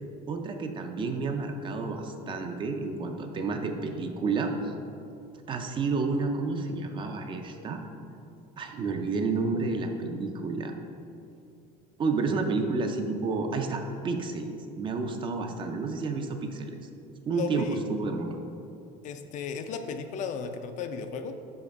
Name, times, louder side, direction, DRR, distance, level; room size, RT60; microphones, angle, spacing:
voice 1, 0.3-4.7 5.5-7.8 8.6-10.7 12.0-16.8 17.3-18.4, right 3 dB, 30° right, 5 dB, 0.4 m, -30 dB
voice 2, 17.3-17.8 19.0-21.3, left 6 dB, 45° left, 7 dB, 0.4 m, -35 dB
5.8 x 4.3 x 5.2 m, 2.6 s
cardioid pair, 150°, 18 cm